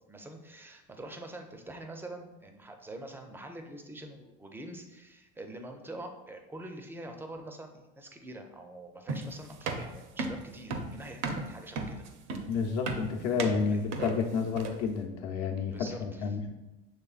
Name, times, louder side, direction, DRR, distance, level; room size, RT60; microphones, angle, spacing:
voice 1, 0.1-12.0 13.7-13.8 15.7-16.3, right 1 dB, 5° right, 5 dB, 0.4 m, -45 dB
sound 1, 9.1-14.9, right 3 dB, 65° right, 0.7 m, -35 dB
voice 2, 12.5-16.5, left 5 dB, 65° left, 3 dB, 0.8 m, -30 dB
6.8 x 3.2 x 2.4 m, 1.0 s
supercardioid pair, 115°, 30 cm